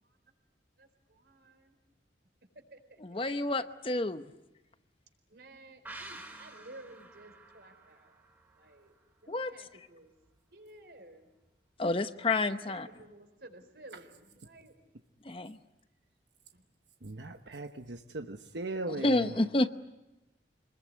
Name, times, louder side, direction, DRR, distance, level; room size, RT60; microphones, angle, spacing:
voice 1, 3.0-4.2 9.3-9.5 11.8-12.9 15.2-15.6 18.9-19.7, left 2 dB, 30° left, 0.8 m, -29 dB
voice 2, 5.3-8.0 8.6-8.9 9.2-10.1 10.5-11.2 13.0-14.7, right 2 dB, 65° right, 4.2 m, -53 dB
sound 1, 5.8-9.3 9.6-9.7, right 2 dB, 10° right, 3.6 m, -50 dB
voice 3, 17.0-19.3, right 2 dB, 85° right, 1.1 m, -38 dB
27.0 x 21.0 x 9.4 m
head